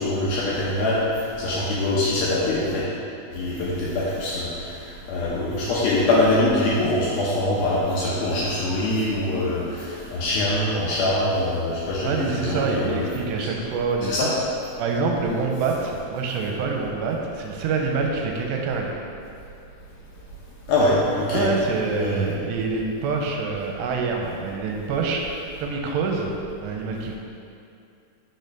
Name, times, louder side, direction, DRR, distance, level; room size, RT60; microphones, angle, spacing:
voice 1, 0.0-2.8 3.3-4.5 5.1-13.0 13.4-13.5 14.0-14.3 20.7-21.5 22.0-22.3, left 2 dB, 75° left, -6 dB, 2.3 m, -23 dB
voice 2, 12.0-14.2 14.8-18.9 20.9-21.0 21.3-26.3 26.6-27.2, right 4 dB, 85° right, 1 dB, 2.8 m, -26 dB
6.3 x 4.3 x 5.2 m, 2.6 s
omnidirectional pair, 5.1 m